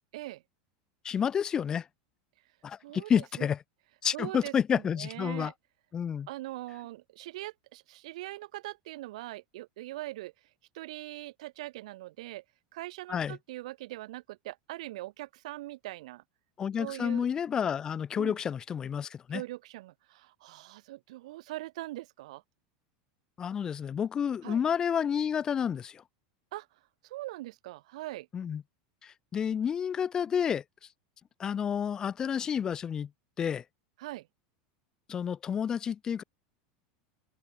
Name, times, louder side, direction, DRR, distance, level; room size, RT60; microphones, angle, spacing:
voice 1, 1.0-1.9 2.6-3.6 4.0-5.5 5.9-6.3 13.1-13.4 16.6-19.4 23.4-26.0 28.3-28.6 29.0-30.6 31.4-33.1 33.4-33.6 35.1-36.2, left 8 dB, 20° left, 0.4 m, -30 dB
voice 2, 2.8-3.5 4.1-5.5 6.3-10.3 10.7-12.4 12.7-16.2 16.8-17.3 18.2-18.4 19.3-22.4 24.4-24.6 26.5-26.7 27.0-28.3 34.0-34.3, right 17 dB, 75° right, 1.4 m, -41 dB
supercardioid pair, 155°, 4 cm